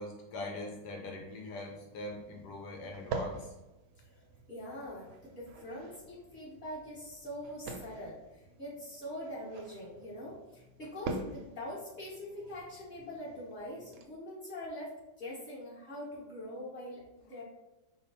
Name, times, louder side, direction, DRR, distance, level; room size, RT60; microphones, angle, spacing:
voice 1, 0.0-3.5, left 1 dB, 75° left, 1 dB, 1.2 m, -42 dB
sound 1, 1.7-14.0, right 3 dB, 75° right, 1.1 m, -46 dB
voice 2, 4.0-17.4, left 1 dB, 30° left, -8 dB, 1.7 m, -43 dB
5.0 x 2.2 x 4.2 m, 1.0 s
omnidirectional pair, 1.9 m